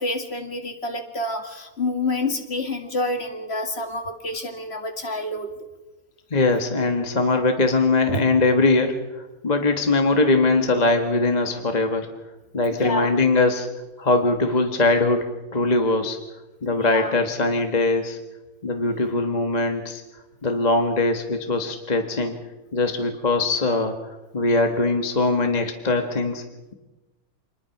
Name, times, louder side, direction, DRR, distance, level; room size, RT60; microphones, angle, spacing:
voice 1, 0.0-5.5 8.1-8.2 12.7-13.1 16.8-17.2, left 2 dB, 45° left, 6 dB, 2.2 m, -28 dB
voice 2, 6.3-8.9 9.4-12.1 12.5-13.7 14.0-16.2 16.6-18.2 18.6-20.0 20.4-22.3 22.7-26.4, left 2 dB, 30° left, 5 dB, 1.5 m, -21 dB
26.0 x 20.5 x 5.9 m, 1.1 s
omnidirectional pair, 1.5 m